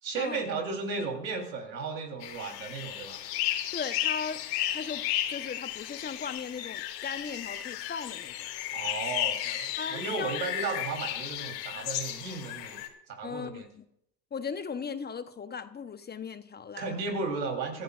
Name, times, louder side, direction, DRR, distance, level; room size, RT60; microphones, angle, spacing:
voice 1, 0.0-3.2 8.7-13.7 16.8-17.8, right 4 dB, 90° right, 2 dB, 3.8 m, -35 dB
sound 1, 2.2-12.9, left 13 dB, 65° left, 3.0 m, -34 dB
voice 2, 3.7-4.4 4.7-8.5 9.8-10.4 13.2-13.8 14.3-17.0, left 6 dB, 20° left, 10 dB, 1.0 m, -38 dB
25.0 x 14.0 x 2.5 m, 0.76 s
hypercardioid pair, 90°, 49 cm